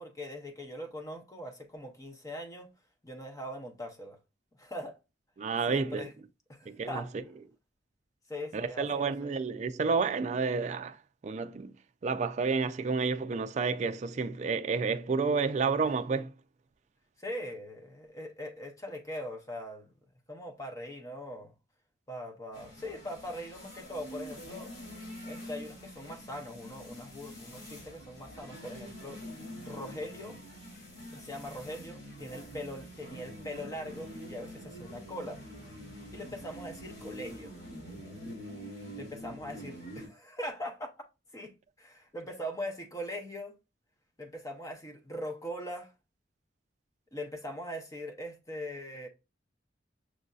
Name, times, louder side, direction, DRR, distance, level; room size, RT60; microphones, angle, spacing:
voice 1, 0.0-2.7 3.0-4.2 4.6-5.0 5.7-6.1 6.5-7.1 8.3-9.3 17.2-19.9 20.3-21.5 22.1-24.7 25.2-29.2 29.6-30.4 31.1-35.4 36.1-37.5 39.0-40.9 41.3-41.5 41.8-43.5 44.2-45.9 47.1-49.1, left 1 dB, 20° left, 0.7 m, -41 dB
voice 2, 5.4-6.1 6.7-7.0 8.5-11.0 11.2-11.7 12.0-16.3, right 5 dB, 40° right, 0.3 m, -30 dB
sound 1, 22.5-40.1, equal, 65° left, 2.6 m, -46 dB
6.2 x 2.6 x 2.3 m
head